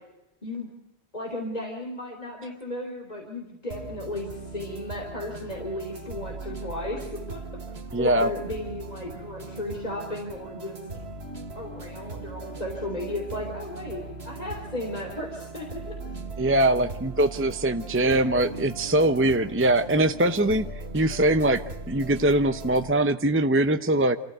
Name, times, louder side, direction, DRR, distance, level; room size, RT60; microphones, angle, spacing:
voice 1, 1.1-7.4 8.0-10.8 11.6-15.9 20.3-20.5, left 1 dB, 40° left, 1 dB, 3.7 m, -35 dB
sound 1, 3.7-22.9, right 3 dB, 70° right, 2.0 m, -39 dB
voice 2, 7.9-8.3 16.4-24.2, right 1 dB, 15° right, 9 dB, 0.8 m, -22 dB
28.5 x 15.0 x 9.2 m, 0.94 s
omnidirectional pair, 1.1 m